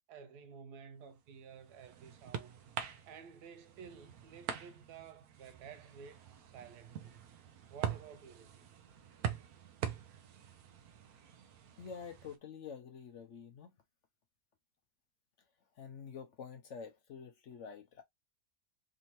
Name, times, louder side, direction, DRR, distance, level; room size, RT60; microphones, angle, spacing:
voice 1, 0.1-2.6 3.1-7.3 7.7-8.7, right 7 dB, 90° right, 1.2 m, -53 dB
sound 1, 1.3-12.4, right 8 dB, 75° right, 1.1 m, -44 dB
voice 2, 11.8-13.8 15.7-18.0, left 6 dB, 65° left, 0.8 m, -48 dB
3.5 x 2.8 x 2.9 m
omnidirectional pair, 1.7 m